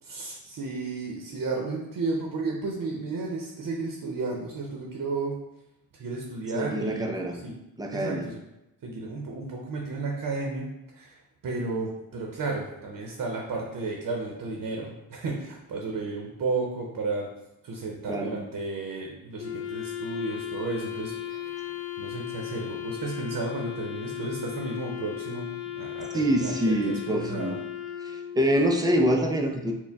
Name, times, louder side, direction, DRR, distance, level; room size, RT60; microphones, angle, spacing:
voice 1, 0.0-5.4 6.0-7.5 7.9-8.4 8.8-11.1 11.4-17.3 17.6-21.1 22.0-25.5 25.8-27.5, right 3 dB, 55° right, 0 dB, 0.7 m, -33 dB
voice 2, 6.5-7.4 7.8-8.3 18.1-18.5 26.1-27.6 28.0-29.7, equal, 10° right, 3 dB, 0.4 m, -25 dB
Wind instrument woodwind instrument, 19.4-28.6, left 11 dB, 65° left, 0.8 m, -36 dB
4.4 x 2.1 x 3.4 m, 0.93 s
wide cardioid pair, 115°, 38 cm